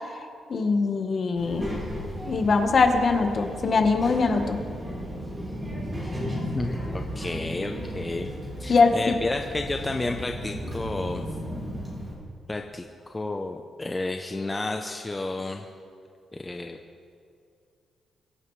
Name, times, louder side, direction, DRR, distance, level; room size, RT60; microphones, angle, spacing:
voice 1, 0.1-1.6 2.3-4.6 8.7-9.2, left 4 dB, 40° left, 5 dB, 1.2 m, -22 dB
Child speech kid speaking, 1.4-12.1, equal, 15° right, 4.0 m, -34 dB
voice 2, 6.5-8.3 8.6-11.3 12.5-15.6 16.4-16.8, left 2 dB, 15° left, 4 dB, 0.6 m, -31 dB
23.5 x 11.0 x 3.2 m, 2.4 s
cardioid pair, 145°, 0 cm